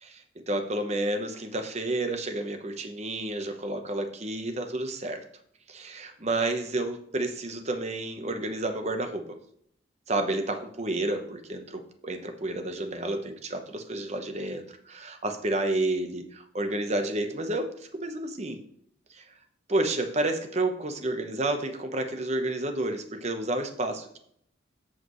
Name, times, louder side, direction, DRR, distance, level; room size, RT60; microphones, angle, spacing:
voice 1, 0.5-5.2 5.7-9.2 10.1-18.6 19.1-19.2 19.7-24.2, right 2 dB, 35° right, 6 dB, 1.0 m, -30 dB
14.0 x 5.0 x 3.1 m, 0.68 s
head